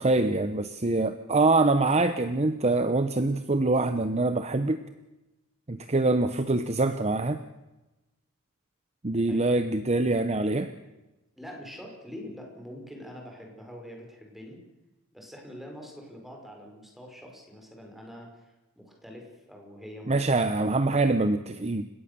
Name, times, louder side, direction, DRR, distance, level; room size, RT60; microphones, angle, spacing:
voice 1, 0.0-4.8 5.7-7.4 9.0-10.7 20.1-21.8, right 2 dB, 30° right, 10 dB, 0.9 m, -24 dB
voice 2, 11.4-14.6 15.1-20.4, equal, ahead, 1 dB, 5.5 m, -45 dB
30.0 x 16.5 x 6.9 m, 1.0 s
head